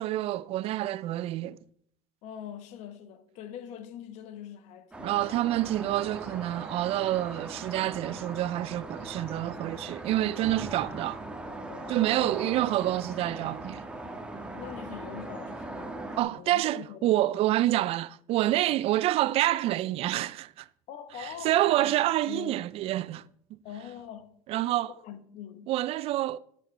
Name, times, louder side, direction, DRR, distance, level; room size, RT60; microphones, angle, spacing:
voice 1, 0.0-1.6 5.0-11.2 11.9-13.8 16.2-20.7 21.2-23.2 23.5-23.6 24.5-24.9 25.7-26.4, right 15 dB, 55° right, 0.4 m, -27 dB
voice 2, 2.2-5.5 5.8-5.9 11.7-12.5 14.2-17.4 18.6-18.8 20.9-22.0 22.2-22.6 23.6-24.4 24.9-25.7, left 9 dB, 70° left, 1.0 m, -43 dB
sound 1, 4.9-16.2, right 2 dB, 10° right, 1.3 m, -40 dB
10.5 x 8.0 x 3.3 m
supercardioid pair, 110°, 12 cm